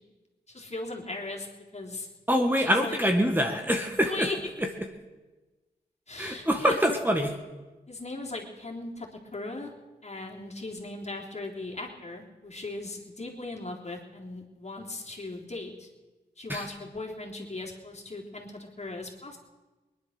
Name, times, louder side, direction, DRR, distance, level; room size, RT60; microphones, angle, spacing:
voice 1, 0.5-1.5 1.7-2.1 2.6-3.0 4.0-4.4 6.1-7.0 7.9-9.7 10.0-15.9 16.4-19.4, left 2 dB, 40° left, 0 dB, 3.4 m, -38 dB
voice 2, 2.3-4.3 6.2-7.3 16.5-16.6, equal, 10° right, 3 dB, 1.8 m, -25 dB
20.0 x 10.5 x 6.5 m, 1.2 s
cardioid pair, 55°, 17 cm